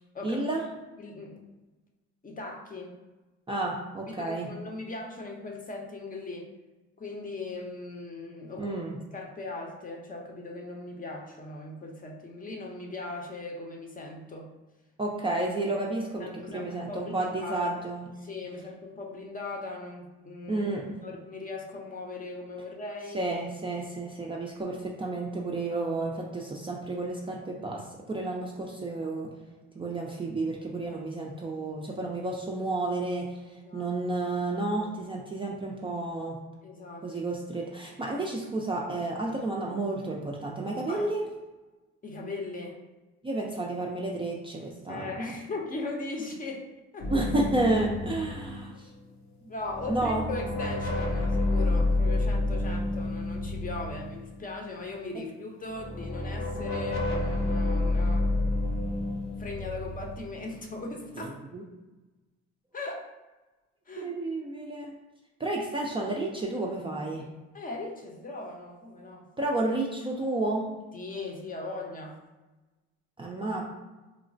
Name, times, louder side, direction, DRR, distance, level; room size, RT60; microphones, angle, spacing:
voice 1, 0.2-0.6 3.5-4.5 8.6-9.0 15.0-18.1 20.5-21.0 23.1-29.3 29.8-36.4 37.0-41.2 43.2-45.3 47.1-48.9 49.9-50.2 61.2-61.6 64.0-64.9 65.4-67.3 69.4-70.7 73.2-73.7, right 2 dB, 15° right, -2 dB, 0.4 m, -31 dB
voice 2, 1.0-1.4 2.2-2.9 3.5-3.6 4.2-6.5 7.0-8.7 9.1-14.5 16.2-17.7 18.2-20.6 21.0-23.3 33.6-33.9 36.6-37.1 40.9-41.1 42.0-42.8 44.9-47.1 49.5-58.5 59.4-61.4 62.7-63.1 63.9-64.1 67.5-69.3 70.9-72.2, left 2 dB, 25° left, 1 dB, 0.6 m, -39 dB
sound 1, 47.0-49.2 49.6-54.7 55.7-61.1, left 2 dB, 65° left, 0.7 m, -29 dB
3.1 x 2.0 x 2.6 m, 1.1 s
supercardioid pair, 70°, 31 cm